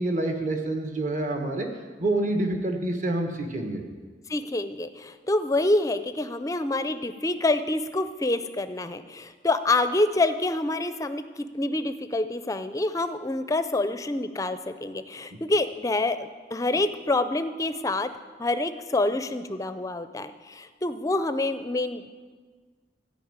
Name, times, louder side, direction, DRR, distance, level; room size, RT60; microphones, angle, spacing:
voice 1, 0.0-1.7 2.0-3.8 15.3-15.4, right 2 dB, 45° right, 4 dB, 1.3 m, -27 dB
voice 2, 4.3-18.1 18.4-22.1, left 2 dB, 20° left, 11 dB, 0.4 m, -27 dB
13.0 x 5.4 x 8.9 m, 1.5 s
head